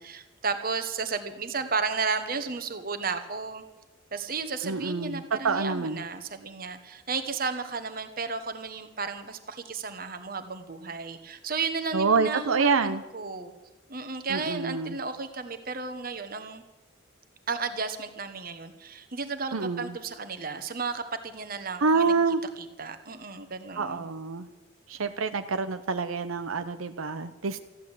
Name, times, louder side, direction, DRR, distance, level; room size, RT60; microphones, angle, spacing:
voice 1, 0.0-3.6 4.1-13.5 13.9-16.6 17.5-22.1 22.8-24.1, right 4 dB, 45° right, 8 dB, 1.3 m, -33 dB
voice 2, 4.6-6.0 11.9-13.0 14.3-15.0 19.5-20.0 21.8-22.4 23.8-24.5 24.9-27.6, right 4 dB, 80° right, 9 dB, 0.7 m, -27 dB
14.5 x 11.0 x 8.2 m, 1.1 s
head